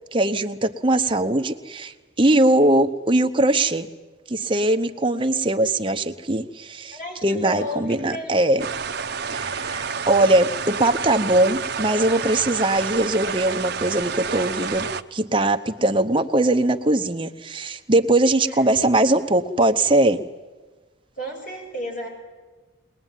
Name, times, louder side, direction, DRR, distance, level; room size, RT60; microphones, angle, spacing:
voice 1, 0.1-3.9 4.3-8.6 9.3-20.2, right 1 dB, 25° right, 7 dB, 0.9 m, -21 dB
voice 2, 6.9-8.5 18.4-18.8 21.2-22.1, left 1 dB, 45° left, 0 dB, 7.0 m, -33 dB
sound 1, 8.6-15.0, right 6 dB, 55° right, 0.8 m, -29 dB
21.5 x 21.0 x 9.2 m, 1.3 s
head